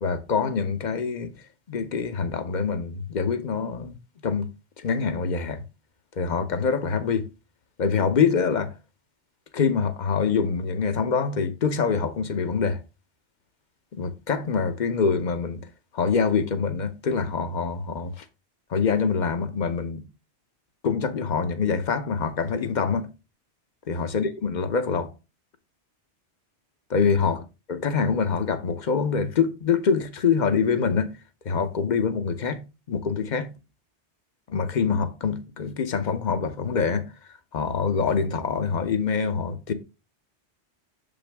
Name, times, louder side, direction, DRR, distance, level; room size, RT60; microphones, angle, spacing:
voice 1, 0.0-1.3 1.7-3.9 4.2-4.5 4.8-5.6 6.2-7.3 7.8-8.8 9.5-12.8 13.9-15.7 15.9-18.2 18.7-20.0 20.8-23.1 23.9-25.1 26.9-27.4 27.7-31.2 31.4-33.5 34.5-37.1 37.5-39.7, left 5 dB, 45° left, 0.9 m, -25 dB
6.8 x 5.3 x 3.4 m
omnidirectional pair, 1.2 m